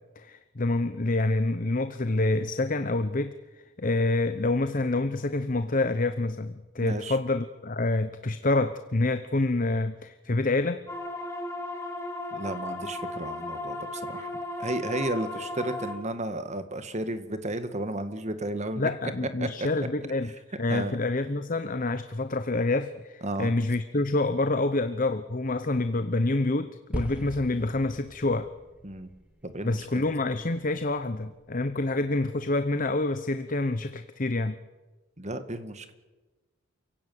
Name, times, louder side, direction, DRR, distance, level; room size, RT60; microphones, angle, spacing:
voice 1, 0.2-3.4 3.8-10.8 18.8-20.3 20.6-28.5 29.6-34.6, left 2 dB, 40° left, 10 dB, 0.9 m, -27 dB
voice 2, 6.8-7.2 12.3-14.3 14.6-18.9 19.4-19.7 20.2-20.3 20.7-21.0 23.2-23.5 28.8-29.1 29.4-29.9 35.2-35.9, right 1 dB, 30° right, 9 dB, 1.9 m, -33 dB
sound 1, 10.9-15.9, left 2 dB, 15° left, 4.5 m, -35 dB
sound 2, 26.9-31.3, equal, 5° right, 2.9 m, -40 dB
28.5 x 16.5 x 9.5 m, 1.2 s
head